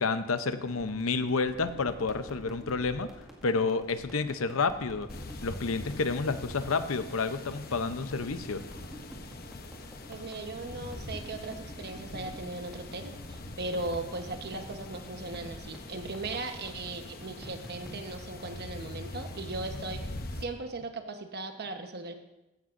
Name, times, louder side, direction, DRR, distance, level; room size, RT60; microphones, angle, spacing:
voice 1, 0.0-3.1 3.4-5.1 5.4-8.6, left 4 dB, 90° left, 11 dB, 0.7 m, -30 dB
sound 1, 0.6-18.1, equal, ahead, 1.9 m, -49 dB
sound 2, 5.1-20.5, left 2 dB, 50° left, 0.9 m, -43 dB
voice 2, 10.1-20.0 20.4-22.1, right 2 dB, 55° right, 6 dB, 1.1 m, -38 dB
15.5 x 11.5 x 2.6 m, 0.96 s
head